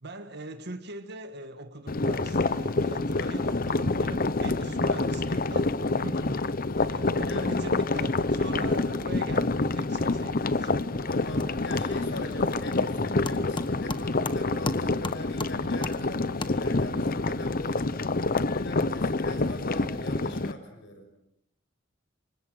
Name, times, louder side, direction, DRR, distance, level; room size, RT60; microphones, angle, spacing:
voice 1, 0.0-6.2 6.9-10.8, right 1 dB, 55° right, 8 dB, 1.6 m, -41 dB
sound 1, 1.9-20.5, left 3 dB, 45° left, 0.9 m, -27 dB
voice 2, 3.1-3.4 6.1-6.5 7.2-7.5 11.0-17.8 18.4-21.0, left 1 dB, 60° left, 6 dB, 6.2 m, -41 dB
sound 2, 11.4-17.0, left 2 dB, 25° left, 1.3 m, -39 dB
29.0 x 25.5 x 6.4 m, 0.76 s
head